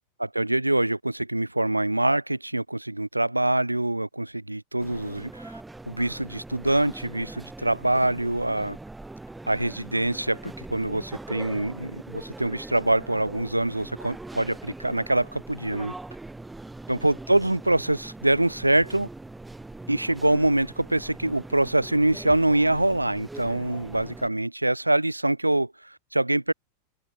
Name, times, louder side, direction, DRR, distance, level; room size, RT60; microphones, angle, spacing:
voice 1, 0.2-5.6 5.9-8.8 9.5-15.9 16.9-19.1 19.9-26.5, right 1 dB, 85° right, 0.8 m, -25 dB
sound 1, 4.8-24.3, right 2 dB, 5° right, 2.8 m, -42 dB
figure-of-eight pair, 90°, 0 cm